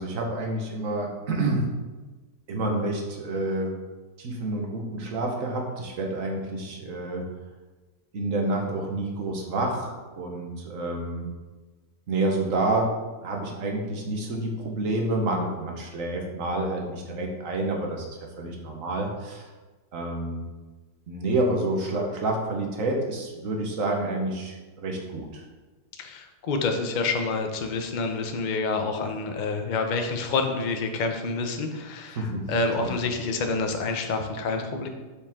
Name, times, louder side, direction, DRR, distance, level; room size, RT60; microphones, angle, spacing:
voice 1, 0.0-1.6 2.5-3.7 4.2-7.3 8.1-11.3 12.1-12.9 13.2-18.1 18.4-19.5 19.9-20.4 21.1-25.4 32.2-32.5 32.8-33.0, right 2 dB, 55° right, 1 dB, 1.4 m, -28 dB
voice 2, 26.0-34.9, left 3 dB, 50° left, 4 dB, 0.5 m, -28 dB
7.2 x 5.1 x 3.6 m, 1.3 s
omnidirectional pair, 1.8 m